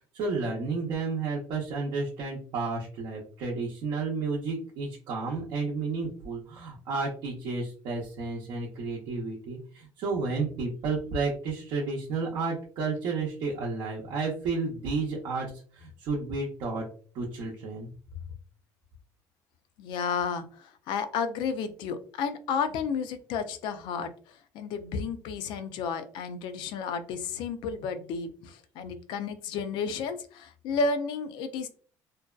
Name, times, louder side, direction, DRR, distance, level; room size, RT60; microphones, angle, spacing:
voice 1, 0.1-16.8 17.1-17.9, right 4 dB, 70° right, -3 dB, 0.6 m, -32 dB
voice 2, 19.8-31.7, left 5 dB, 75° left, 10 dB, 0.4 m, -32 dB
2.6 x 2.1 x 2.3 m, 0.43 s
cardioid pair, 110°, 8 cm